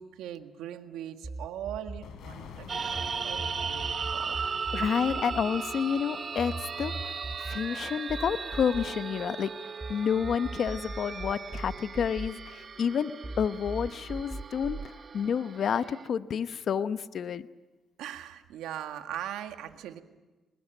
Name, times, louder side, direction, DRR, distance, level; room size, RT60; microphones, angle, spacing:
voice 1, 0.0-4.6 4.9-5.0 18.0-20.0, right 11 dB, 90° right, 7 dB, 1.7 m, -40 dB
sound 1, 1.2-3.1 3.4-9.9 10.2-12.9 13.2-14.9, right 2 dB, 20° right, 2.7 m, -39 dB
sound 2, 2.0-6.7, left 6 dB, 75° left, 3.7 m, -49 dB
sound 3, 2.7-16.1, right 5 dB, 45° right, 1.0 m, -37 dB
voice 2, 4.7-9.5 9.9-17.4, left 7 dB, 60° left, 12 dB, 0.9 m, -30 dB
23.5 x 21.0 x 9.1 m, 1.2 s
cardioid pair, 90°, 0 cm